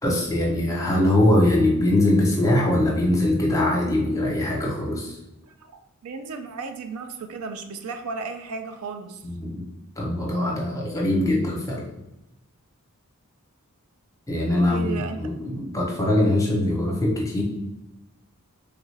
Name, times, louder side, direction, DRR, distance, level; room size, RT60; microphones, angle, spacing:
voice 1, 0.0-5.2 9.2-9.6 10.0-11.9 14.3-17.4, left 1 dB, 15° left, -2 dB, 0.7 m, -22 dB
voice 2, 6.0-9.2 14.6-15.2 16.0-16.2, right 4 dB, 75° right, 6 dB, 0.4 m, -34 dB
3.4 x 2.3 x 3.2 m, 0.92 s
head